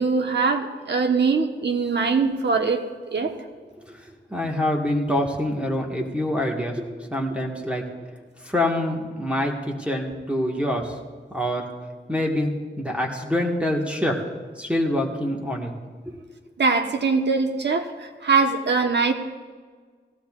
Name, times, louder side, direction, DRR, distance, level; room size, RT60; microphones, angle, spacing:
voice 1, 0.0-2.8 3.1-3.3 16.6-19.1, right 4 dB, 65° right, 5 dB, 1.2 m, -22 dB
voice 2, 4.3-6.8 7.1-7.8 8.4-10.9 11.3-11.6 12.1-14.1 14.6-15.7 16.0-16.2, left 1 dB, 5° right, -1 dB, 1.6 m, -25 dB
18.5 x 15.5 x 2.4 m, 1.5 s
wide cardioid pair, 75°, 19 cm